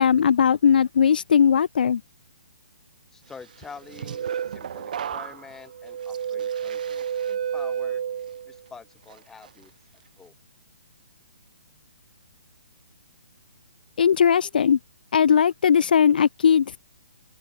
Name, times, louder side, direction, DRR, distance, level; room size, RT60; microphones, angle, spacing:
voice 1, 0.0-2.0 14.0-14.8 15.1-16.8, left 7 dB, 70° left, 0.4 m, -19 dB
voice 2, 3.1-8.0 8.4-9.7 10.2-10.3, left 5 dB, 10° left, 3.0 m, -46 dB
sound 1, 3.6-8.7 9.1-9.5, right 8 dB, 60° right, 1.4 m, -31 dB
open air
hypercardioid pair, 145°, 5 cm